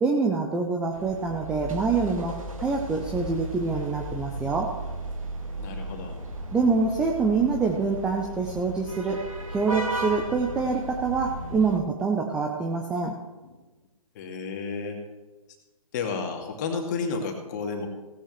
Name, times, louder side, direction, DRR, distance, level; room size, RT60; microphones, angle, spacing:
voice 1, 0.0-4.7 6.5-9.2 9.5-13.1, right 4 dB, 5° right, 1 dB, 0.4 m, -25 dB
sound 1, 0.9-11.8, right 1 dB, 65° right, 2.0 m, -35 dB
voice 2, 5.6-6.2 13.4-13.6 14.1-15.0 15.9-17.9, left 5 dB, 30° left, 2 dB, 2.1 m, -31 dB
16.5 x 12.0 x 3.2 m, 1.2 s
figure-of-eight pair, 130°, 18 cm